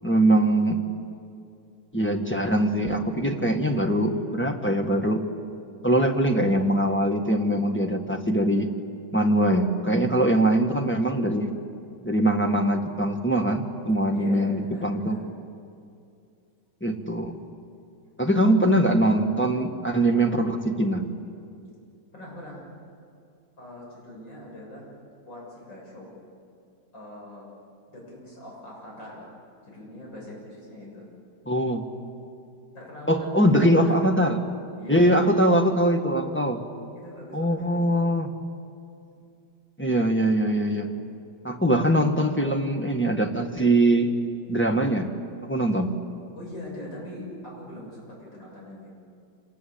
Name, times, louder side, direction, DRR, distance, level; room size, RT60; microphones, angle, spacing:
voice 1, 0.0-0.8 1.9-5.2 5.8-8.7 9.1-11.5 12.0-15.2 16.8-17.4 18.2-21.1 31.5-31.8 33.1-34.4 34.9-36.6 37.3-38.3 39.8-40.9 41.4-44.1 44.5-45.1 45.4-46.0, right 1 dB, 5° left, 3 dB, 1.4 m, -22 dB
voice 2, 10.1-10.4 14.1-15.3 18.5-18.7 20.1-20.3 22.1-22.6 23.6-24.9 25.2-26.1 26.9-27.5 27.9-29.4 29.6-31.1 32.7-34.1 34.8-35.3 36.9-37.9 46.3-48.9, left 1 dB, 90° left, -3 dB, 7.9 m, -41 dB
27.0 x 19.5 x 8.6 m, 2.4 s
omnidirectional pair, 2.0 m